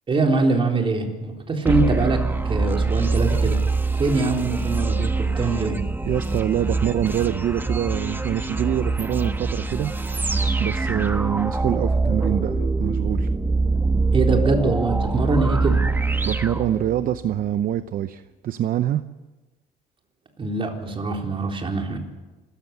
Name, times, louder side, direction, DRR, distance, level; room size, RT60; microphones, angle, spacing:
voice 1, 0.1-3.6 3.9-5.8 14.1-15.8 20.4-22.0, right 3 dB, 30° right, 2 dB, 3.8 m, -23 dB
sound 1, 1.6-17.3, right 3 dB, 10° right, 1.3 m, -24 dB
voice 2, 6.0-9.9 10.6-13.3 16.2-19.0, right 11 dB, 55° right, 12 dB, 0.7 m, -25 dB
27.0 x 14.0 x 7.1 m, 1.2 s
cardioid pair, 110°, 17 cm